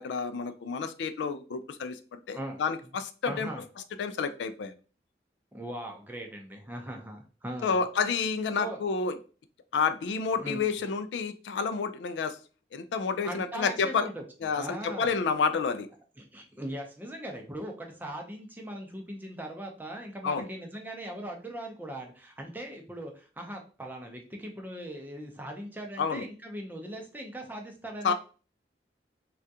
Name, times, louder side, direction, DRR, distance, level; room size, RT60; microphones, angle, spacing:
voice 1, 0.0-3.5 4.0-4.7 7.6-9.2 9.7-12.4 12.7-14.1 14.4-15.9 20.2-20.5 26.0-26.3 28.0-28.1, left 5 dB, 90° left, 0.3 m, -29 dB
voice 2, 3.3-3.6 5.5-7.8 8.6-8.8 10.3-10.6 13.2-14.2 14.5-15.1 16.2-28.1, right 1 dB, 10° right, 0.5 m, -39 dB
3.5 x 2.3 x 2.7 m
head